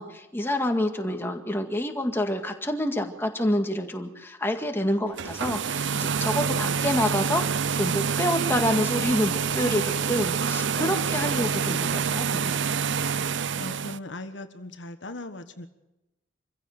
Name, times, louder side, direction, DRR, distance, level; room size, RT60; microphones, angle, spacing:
voice 1, 0.0-12.8, equal, 10° left, 4 dB, 2.0 m, -28 dB
sound 1, 5.1-14.0, right 6 dB, 65° right, 0.6 m, -27 dB
voice 2, 13.6-15.7, left 2 dB, 65° left, 8 dB, 1.4 m, -38 dB
25.5 x 15.5 x 6.7 m, 0.98 s
head